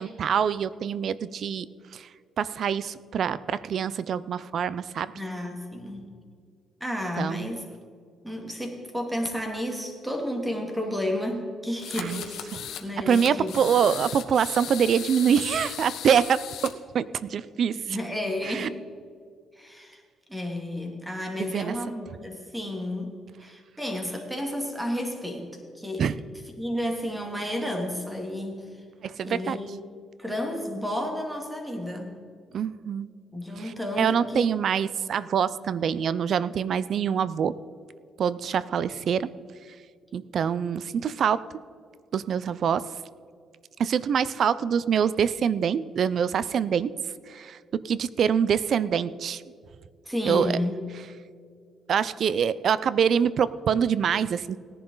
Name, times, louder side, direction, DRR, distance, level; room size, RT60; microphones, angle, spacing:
voice 1, 0.0-1.7 1.9-2.1 2.4-5.1 7.2-7.5 12.0-12.2 13.1-18.0 18.4-18.7 21.4-21.8 26.0-26.2 29.0-29.6 32.5-33.1 33.6-37.5 38.2-39.3 40.1-41.4 42.1-42.9 43.8-47.0 47.3-49.4 50.3-50.6 51.9-54.6, right 7 dB, 60° right, 17 dB, 0.5 m, -25 dB
voice 2, 5.1-6.1 6.8-7.6 8.2-12.4 12.8-13.5 17.7-18.8 19.5-20.0 20.3-23.1 23.4-26.1 26.6-28.8 29.2-29.7 30.2-32.2 33.3-34.6 50.0-50.8, left 1 dB, 5° right, 2 dB, 2.7 m, -32 dB
sound 1, 11.8-12.8 13.1-16.7, left 10 dB, 80° left, 1.1 m, -37 dB
18.0 x 10.5 x 4.0 m, 2.2 s
cardioid pair, 90°, 0 cm